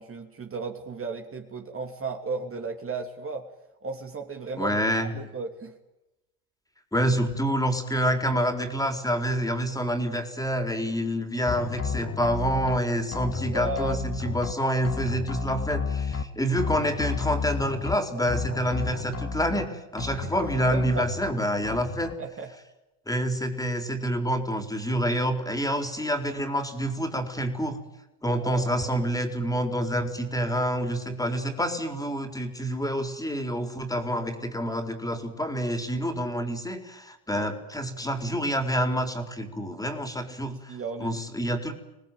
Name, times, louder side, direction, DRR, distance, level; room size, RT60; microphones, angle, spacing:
voice 1, 0.0-3.5 3.8-5.7 13.5-14.0 20.2-21.1 22.2-22.5 28.3-28.9 37.3-37.5 40.4-41.1, right 3 dB, 25° right, 3 dB, 2.9 m, -35 dB
voice 2, 4.6-5.1 6.9-22.1 23.1-27.8 28.2-41.7, equal, 5° left, 6 dB, 4.4 m, -27 dB
sound 1, 11.5-12.8 13.1-14.5 14.9-16.2 16.6-18.0 18.3-19.7 20.0-21.3 21.6-22.1, left 5 dB, 30° left, 2.7 m, -32 dB
26.0 x 19.0 x 9.2 m, 0.97 s
hypercardioid pair, 85°, 48 cm